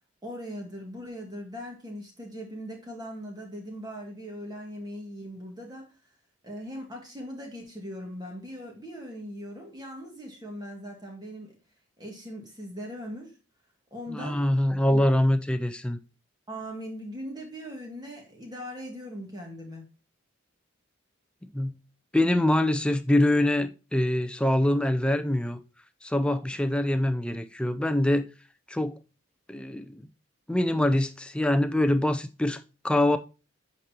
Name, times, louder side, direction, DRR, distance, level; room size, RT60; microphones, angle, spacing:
voice 1, 0.2-5.9 6.4-11.6 12.0-13.3 13.9-14.4 16.5-19.8, equal, 20° right, 2.1 m, -40 dB
voice 2, 14.1-16.0 21.4-21.7 22.1-25.6 26.0-28.3 28.7-29.0 29.5-30.1 30.5-33.2, left 1 dB, 5° left, 0.5 m, -24 dB
8.3 x 5.3 x 2.8 m
head